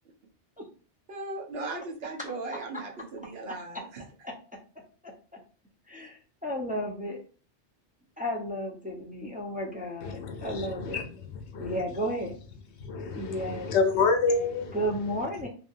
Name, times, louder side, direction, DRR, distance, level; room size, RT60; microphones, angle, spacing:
voice 1, 1.1-4.0, right 3 dB, 65° right, 0 dB, 0.9 m, -37 dB
voice 2, 5.9-7.2 8.2-11.0 11.6-12.3 13.1-13.8 14.7-15.5, equal, 10° right, -2 dB, 0.4 m, -33 dB
voice 3, 10.0-11.8 12.9-14.8, left 4 dB, 80° left, 6 dB, 0.9 m, -28 dB
2.7 x 2.6 x 2.5 m, 0.38 s
omnidirectional pair, 1.2 m